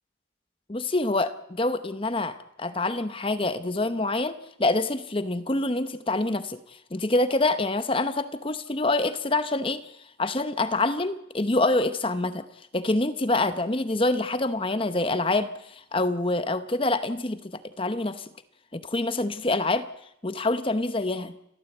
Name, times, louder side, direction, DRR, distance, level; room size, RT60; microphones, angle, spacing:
voice 1, 0.7-6.6 6.9-9.8 10.2-12.4 12.7-18.2 18.7-19.9 20.2-21.3, left 2 dB, 25° left, 11 dB, 0.9 m, -26 dB
29.0 x 13.0 x 8.1 m, 0.79 s
head